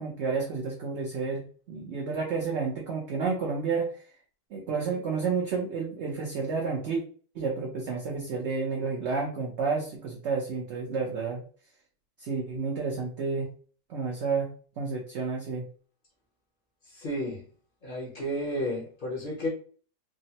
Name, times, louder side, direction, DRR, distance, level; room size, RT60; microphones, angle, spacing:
voice 1, 0.0-1.4 1.7-3.9 4.5-7.0 7.4-11.4 12.2-13.5 13.9-14.5 14.8-15.6, right 4 dB, 65° right, 0 dB, 0.7 m, -30 dB
voice 2, 16.9-17.4 17.8-19.5, equal, 40° left, -6 dB, 0.7 m, -32 dB
3.4 x 2.0 x 2.7 m, 0.43 s
omnidirectional pair, 1.7 m